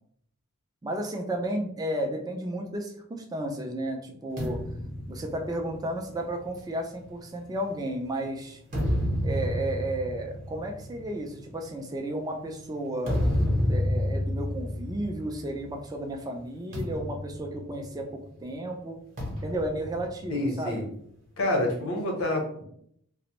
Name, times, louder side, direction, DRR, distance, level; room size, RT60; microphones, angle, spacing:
voice 1, 0.8-4.6 5.1-8.6 9.2-13.2 13.7-19.0 19.4-20.9, right 1 dB, 15° right, 3 dB, 0.3 m, -33 dB
sound 1, 4.4-8.0 8.5-15.9 16.2-16.4 16.7-18.3 19.2-20.9, left 1 dB, 35° right, 0.8 m, -31 dB
voice 2, 20.3-20.9 21.4-22.6, left 1 dB, 70° left, 1 dB, 0.7 m, -28 dB
2.5 x 2.0 x 2.9 m, 0.68 s
head